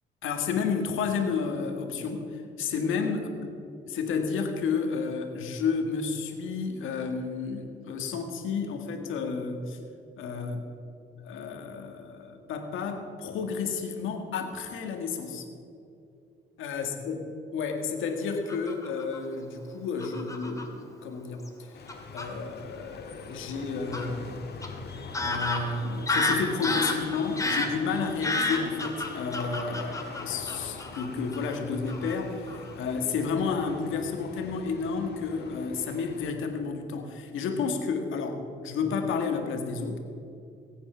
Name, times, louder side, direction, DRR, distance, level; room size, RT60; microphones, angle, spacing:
voice 1, 0.2-3.5 3.9-9.8 10.2-10.7 11.2-15.4 16.6-17.2 17.5-21.8 22.1-24.3 25.2-40.0, left 5 dB, 85° left, 4 dB, 1.8 m, -31 dB
Fowl / Bird vocalization bird call bird song, 18.5-19.2 20.0-20.6 21.5-21.6 21.9-22.3 23.9-24.1 24.6-24.7 25.1-31.1 31.3-31.6 31.9-32.2 32.5-32.7, left 2 dB, 15° left, 2.1 m, -30 dB
sound 1, 21.7-36.3, left 4 dB, 55° left, 1.8 m, -44 dB
19.0 x 8.7 x 5.8 m, 2.6 s
cardioid pair, 90°, 20 cm